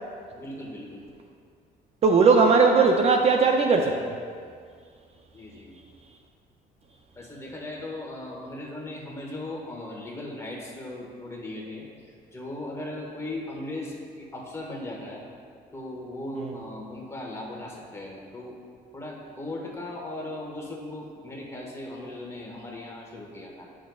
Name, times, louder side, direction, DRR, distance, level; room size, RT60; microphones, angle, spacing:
voice 1, 0.3-1.1 5.3-5.8 7.1-11.9 12.3-15.2 15.7-18.6 18.9-23.7, left 1 dB, 15° left, -3 dB, 1.5 m, -38 dB
voice 2, 2.0-4.1, right 4 dB, 40° right, 3 dB, 0.5 m, -19 dB
10.0 x 6.3 x 2.3 m, 2.1 s
cardioid pair, 110°, 17 cm